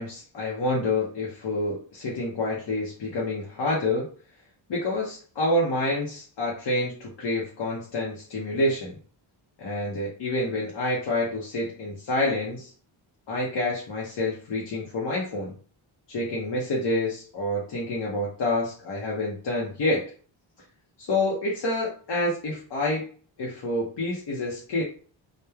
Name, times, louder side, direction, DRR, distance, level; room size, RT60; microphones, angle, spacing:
voice 1, 0.0-4.1 4.7-8.9 9.6-12.7 13.3-15.6 16.1-20.1 21.0-23.0 23.4-24.8, left 2 dB, 60° left, -4 dB, 0.8 m, -28 dB
2.9 x 2.2 x 2.3 m, 0.42 s
cardioid pair, 95°, 48 cm